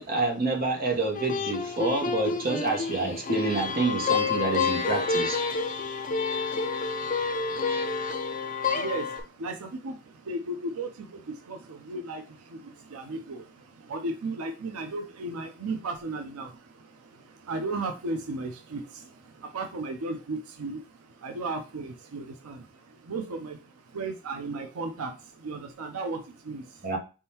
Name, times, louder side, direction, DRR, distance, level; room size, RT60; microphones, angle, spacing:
voice 1, 0.0-5.4 26.8-27.0, right 3 dB, 40° right, 1 dB, 1.1 m, -28 dB
sound 1, 1.1-9.2, left 5 dB, 40° left, 0.5 m, -29 dB
voice 2, 5.5-26.9, right 2 dB, 90° right, 6 dB, 0.6 m, -36 dB
4.3 x 3.6 x 2.8 m, 0.33 s
head